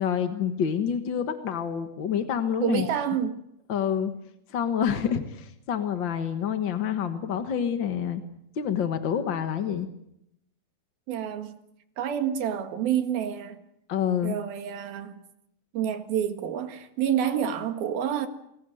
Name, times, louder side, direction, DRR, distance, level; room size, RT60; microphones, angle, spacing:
voice 1, 0.0-3.0 3.7-4.1 4.5-8.2 8.5-9.9 13.9-14.3, left 8 dB, 50° left, 1.4 m, -27 dB
voice 2, 2.6-3.4 11.1-11.6 12.0-13.6 14.2-15.2 15.7-18.3, right 9 dB, 85° right, 3.7 m, -28 dB
28.0 x 20.5 x 7.8 m
omnidirectional pair, 4.1 m